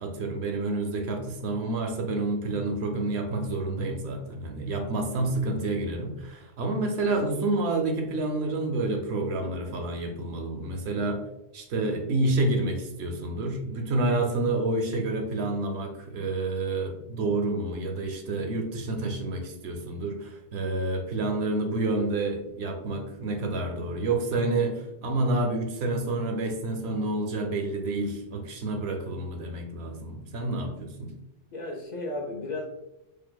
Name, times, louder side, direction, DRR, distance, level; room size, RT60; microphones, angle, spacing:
voice 1, 0.0-11.2 11.5-31.1, right 2 dB, 80° right, 3 dB, 0.9 m, -29 dB
voice 2, 5.1-5.5 31.5-32.7, left 2 dB, 55° left, 1 dB, 0.5 m, -35 dB
4.4 x 2.5 x 2.3 m, 0.91 s
omnidirectional pair, 1.1 m